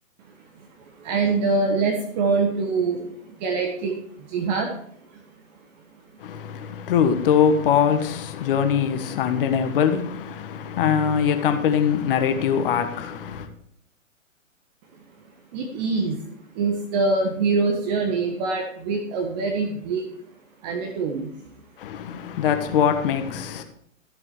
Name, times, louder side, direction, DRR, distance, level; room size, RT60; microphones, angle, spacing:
voice 1, 0.6-4.7 5.1-5.2 15.5-20.1 20.6-21.3, right 4 dB, 30° right, 1.4 m, -25 dB
voice 2, 6.2-13.5 21.8-23.6, left 8 dB, 45° left, 1.4 m, -22 dB
13.5 x 7.4 x 4.7 m
hypercardioid pair, 135°, 40 cm